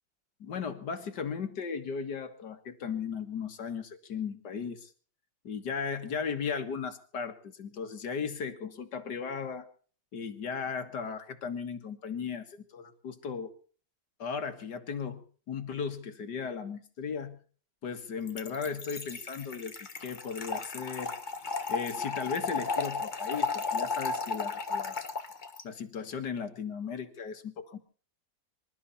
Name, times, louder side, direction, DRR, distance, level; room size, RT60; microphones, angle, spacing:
voice 1, 0.4-4.9 5.4-9.7 10.1-13.5 14.2-17.4 17.8-21.1 21.7-25.1 25.6-27.8, left 6 dB, 60° left, 7 dB, 2.2 m, -36 dB
Trickle dribble / Fill (with liquid), 18.3-25.6, left 4 dB, 30° left, 1.3 m, -34 dB
26.0 x 12.5 x 4.2 m, 0.42 s
omnidirectional pair, 2.0 m